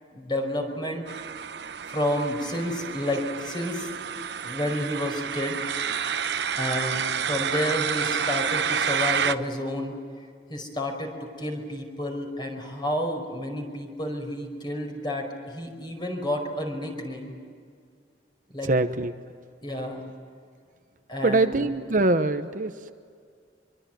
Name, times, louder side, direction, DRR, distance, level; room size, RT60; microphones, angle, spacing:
voice 1, 0.1-1.1 1.9-3.9 4.4-5.6 6.6-10.0 10.5-17.4 18.5-18.7 19.6-20.1 21.1-21.6, left 1 dB, 25° left, 3 dB, 5.2 m, -30 dB
sound 1, 1.1-9.4, right 7 dB, 75° right, 0.9 m, -29 dB
voice 2, 18.6-19.1 21.2-22.9, right 2 dB, 50° right, 8 dB, 1.0 m, -23 dB
26.0 x 23.0 x 9.3 m, 2.1 s
head